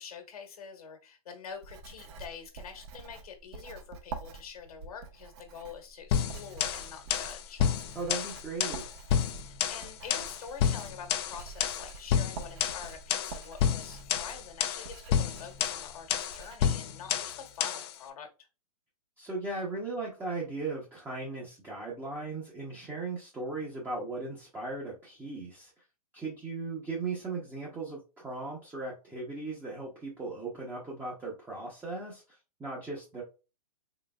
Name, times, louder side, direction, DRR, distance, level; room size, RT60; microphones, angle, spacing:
voice 1, 0.0-7.6 9.4-18.5, left 6 dB, 70° left, 4 dB, 1.3 m, -46 dB
Writing, 1.5-16.6, right 4 dB, 40° right, 0.7 m, -47 dB
sound 1, 6.1-17.9, left 8 dB, 40° left, 0.5 m, -30 dB
voice 2, 7.9-8.9 19.2-25.7 26.1-33.2, right 3 dB, 10° right, -3 dB, 0.8 m, -37 dB
3.9 x 3.2 x 2.3 m, 0.31 s
hypercardioid pair, 135°, 19 cm